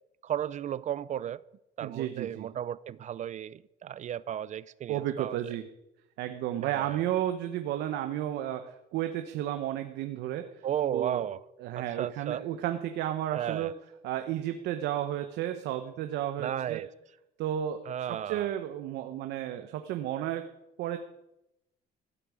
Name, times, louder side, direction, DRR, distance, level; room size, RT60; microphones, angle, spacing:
voice 1, 0.2-1.4 1.8-5.4 6.6-7.0 10.6-11.4 11.7-12.4 13.3-13.7 16.4-16.9 17.9-18.5, right 10 dB, 45° right, 0.4 m, -34 dB
voice 2, 1.8-2.5 4.9-5.7 6.2-10.6 10.9-11.2 11.6-13.8 14.0-16.8 17.4-20.5 20.8-21.0, right 12 dB, 85° right, 1.0 m, -33 dB
16.0 x 8.6 x 8.5 m
cardioid pair, 110°, 17 cm